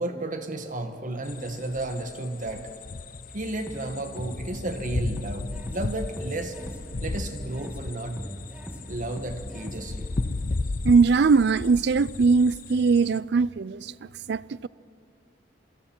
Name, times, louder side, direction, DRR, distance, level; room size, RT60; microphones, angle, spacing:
voice 1, 0.0-2.7 3.3-6.6 7.0-8.3 8.9-10.1, right 2 dB, 50° right, 1.4 m, -33 dB
sound 1, 1.3-13.2, left 3 dB, 50° left, 0.6 m, -35 dB
sound 2, 3.3-10.5, equal, 10° right, 2.2 m, -41 dB
voice 2, 10.8-13.9 14.3-14.7, right 4 dB, 65° right, 0.4 m, -21 dB
28.0 x 23.0 x 4.5 m
head